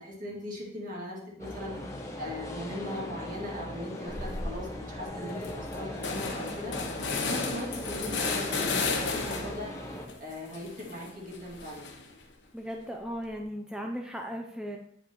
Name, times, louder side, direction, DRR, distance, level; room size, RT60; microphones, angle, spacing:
voice 1, 0.0-1.8 2.2-6.8 7.1-9.8 10.2-12.0, left 1 dB, 50° right, -3 dB, 2.0 m, -39 dB
sound 1, 1.4-10.1, left 1 dB, 15° left, 0.9 m, -39 dB
sound 2, 4.1-4.5 5.0-5.1 5.3-9.7 10.1-12.2, left 4 dB, 75° left, 1.1 m, -34 dB
voice 2, 12.5-14.8, equal, 5° right, 1 dB, 0.4 m, -37 dB
8.8 x 5.1 x 3.0 m, 0.68 s
head